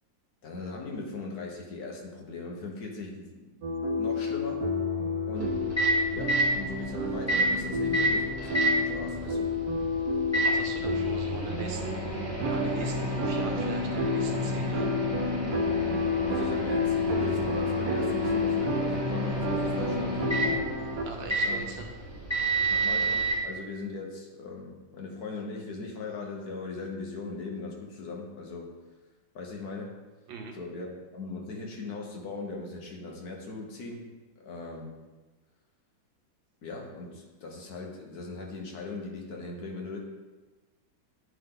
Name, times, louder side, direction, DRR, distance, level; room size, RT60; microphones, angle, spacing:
voice 1, 0.4-3.5 4.0-4.7 5.3-5.7 6.1-9.5 16.3-20.3 21.4-21.6 22.7-28.7 29.3-30.0 30.5-34.1 34.4-35.0 36.6-40.0, left 3 dB, 60° left, 0 dB, 1.4 m, -39 dB
sound 1, 3.6-21.0, left 3 dB, 65° right, 1.2 m, -30 dB
Microwave oven, 5.4-23.4, right 2 dB, 10° left, 1.2 m, -31 dB
voice 2, 10.5-12.0 12.4-14.9 21.0-21.9 30.3-30.5, right 5 dB, 90° right, 2 dB, 1.7 m, -41 dB
9.8 x 3.7 x 3.7 m, 1.2 s
omnidirectional pair, 2.0 m